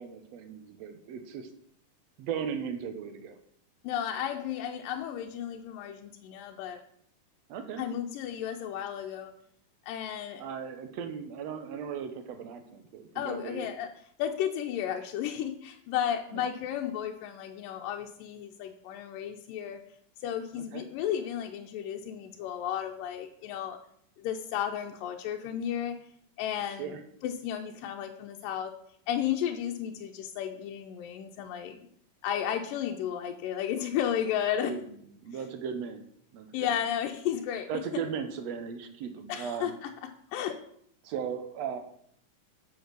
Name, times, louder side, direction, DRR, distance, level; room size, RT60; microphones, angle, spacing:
voice 1, 0.0-1.5 2.2-3.3 7.5-7.8 10.4-13.7 16.3-16.4 20.6-20.8 26.8-27.0 34.7-34.8 35.2-36.0 36.3-36.7 37.7-39.8 41.0-41.8, right 7 dB, 70° right, 7 dB, 1.7 m, -37 dB
voice 2, 3.8-6.8 7.8-9.3 9.9-10.4 13.2-13.9 14.2-19.8 20.2-23.8 24.2-26.0 26.4-27.0 27.2-28.7 29.1-31.9 32.2-34.7 36.5-37.8 39.3-40.6, left 9 dB, 90° left, 3 dB, 2.4 m, -33 dB
7.9 x 6.4 x 6.5 m, 0.67 s
omnidirectional pair, 3.8 m